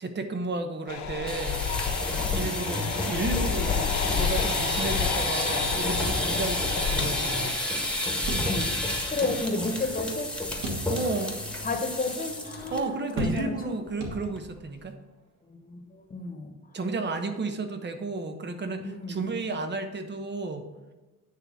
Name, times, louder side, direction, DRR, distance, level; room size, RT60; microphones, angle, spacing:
voice 1, 0.0-1.6 2.3-7.6 10.9-11.4 12.7-15.0 16.7-20.7, right 3 dB, 35° right, 7 dB, 1.0 m, -32 dB
sound 1, 0.9-7.5, left 6 dB, 70° left, 1.2 m, -30 dB
sound 2, 1.2-12.8 13.1-13.4 13.7-13.8 14.2-14.6, left 1 dB, 5° left, 1.5 m, -30 dB
sound 3, 8.3-9.1 9.5-9.6 10.6-11.3 11.8-11.9 13.2-13.7 14.0-14.7, right 1 dB, 80° right, 1.9 m, -34 dB
voice 2, 9.1-10.3 11.6-12.9 13.1-13.5 15.7-15.8 16.1-16.5 18.8-19.2, left 3 dB, 30° left, 4 dB, 1.3 m, -31 dB
9.6 x 3.4 x 6.1 m, 1.2 s
cardioid pair, 90°, 30 cm